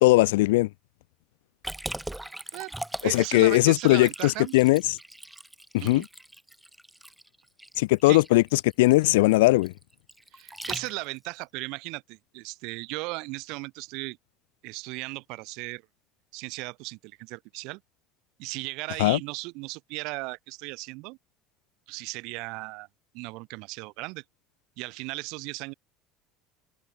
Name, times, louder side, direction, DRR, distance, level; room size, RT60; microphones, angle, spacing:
voice 1, 0.0-0.7 3.0-5.0 5.8-6.0 7.8-9.7 19.0-19.2, left 20 dB, 90° left, 0.4 m, -20 dB
Liquid, 1.6-11.3, right 1 dB, 5° right, 0.9 m, -40 dB
voice 2, 2.5-4.6 5.8-6.1 8.0-8.2 10.3-14.2 14.6-15.8 16.3-17.8 18.4-21.2 21.9-22.9 23.1-24.2 24.8-25.7, right 26 dB, 75° right, 0.7 m, -36 dB
supercardioid pair, 90°, 0 cm